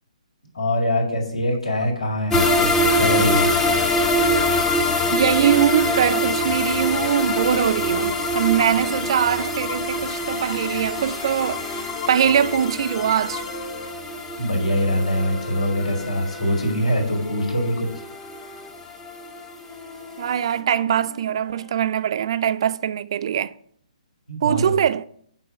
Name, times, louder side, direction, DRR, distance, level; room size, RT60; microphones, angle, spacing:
voice 1, 0.5-3.5 14.4-17.9 24.3-24.6, left 1 dB, 70° left, 2.3 m, -23 dB
sound 1, 2.3-14.1, left 7 dB, 45° left, 0.9 m, -36 dB
sound 2, 2.3-19.4 19.7-19.8 20.2-20.3, left 1 dB, 10° left, 0.5 m, -24 dB
voice 2, 5.1-13.5 20.2-23.5 24.4-25.0, right 9 dB, 45° right, 0.3 m, -22 dB
sound 3, 7.0-13.9 14.7-21.8, left 5 dB, 30° left, 1.3 m, -41 dB
5.7 x 4.6 x 6.2 m
figure-of-eight pair, 130°, 4 cm